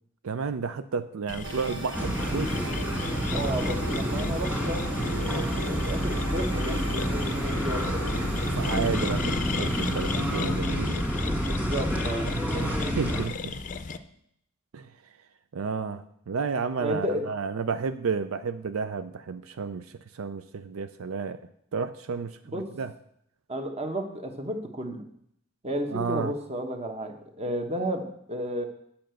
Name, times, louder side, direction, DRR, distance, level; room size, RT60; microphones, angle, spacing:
voice 1, 0.2-2.7 8.5-11.0 12.5-13.5 14.7-14.9 15.5-21.4 21.7-22.9 25.9-26.3, right 5 dB, 80° right, 11 dB, 0.5 m, -32 dB
sound 1, 1.3-14.0, left 3 dB, 40° left, 0.5 m, -35 dB
sound 2, 1.4-10.6, right 3 dB, 60° right, 1.0 m, -39 dB
sound 3, 1.9-13.2, equal, 5° right, 1.7 m, -29 dB
voice 2, 3.3-8.0 11.0-12.3 16.8-17.2 22.5-22.6 23.5-25.1 25.6-28.7, right 1 dB, 30° right, 5 dB, 1.2 m, -33 dB
8.8 x 5.7 x 7.7 m, 0.71 s
head